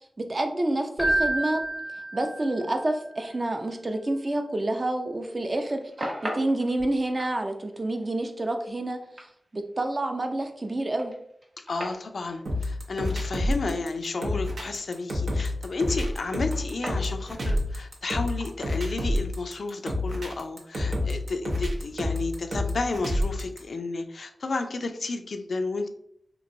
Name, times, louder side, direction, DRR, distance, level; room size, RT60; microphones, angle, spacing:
voice 1, 0.2-1.6 2.1-9.0 9.5-11.1, right 1 dB, 40° right, 4 dB, 0.5 m, -28 dB
Keyboard (musical), 1.0-2.8, right 2 dB, 10° left, 0.6 m, -28 dB
sound 1, 5.4-15.1 15.4-19.4, right 1 dB, 60° right, 0.9 m, -41 dB
voice 2, 11.6-25.9, left 3 dB, 75° left, 6 dB, 0.3 m, -32 dB
sound 2, 12.5-23.6, left 1 dB, 85° right, 0.7 m, -28 dB
3.0 x 2.5 x 2.6 m, 0.70 s
cardioid pair, 55°, 0 cm